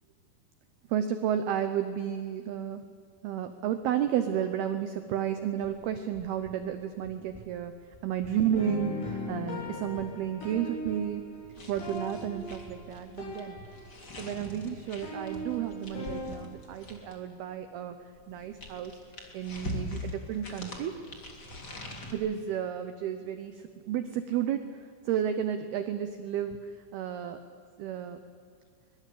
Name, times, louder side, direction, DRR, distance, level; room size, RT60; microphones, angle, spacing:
voice 1, 0.9-2.8 3.2-7.7 8.0-11.2 11.7-13.6 14.2-18.0 18.3-18.9 19.3-20.9 22.1-23.6 23.9-24.6 25.1-26.6 26.9-27.4 27.8-28.2, right 9 dB, 85° right, 9 dB, 2.2 m, -32 dB
sound 1, 5.6-17.1, right 2 dB, 5° right, 6.3 m, -55 dB
sound 2, 8.6-14.3 14.6-16.4, left 1 dB, 80° left, 10.5 m, -39 dB
sound 3, 11.5-17.3 18.1-22.1, left 1 dB, 25° left, 2.6 m, -42 dB
24.0 x 21.5 x 8.6 m, 2.2 s
omnidirectional pair, 5.9 m